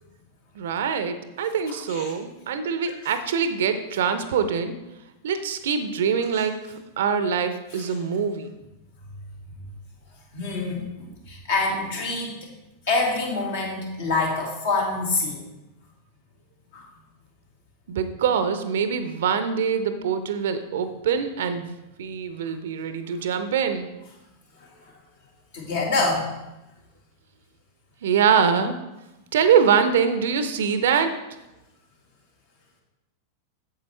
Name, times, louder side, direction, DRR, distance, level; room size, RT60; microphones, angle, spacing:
voice 1, 0.6-4.7 5.2-8.5 17.9-23.9 28.0-28.8 29.3-31.1, right 7 dB, 60° right, 10 dB, 0.6 m, -24 dB
voice 2, 1.7-2.1 7.7-8.0 10.3-12.5 12.9-15.4 16.7-16.9 24.6-24.9 25.5-26.3, left 3 dB, 60° left, -1 dB, 2.1 m, -26 dB
8.5 x 7.3 x 3.2 m, 0.96 s
figure-of-eight pair, 90°, 0 cm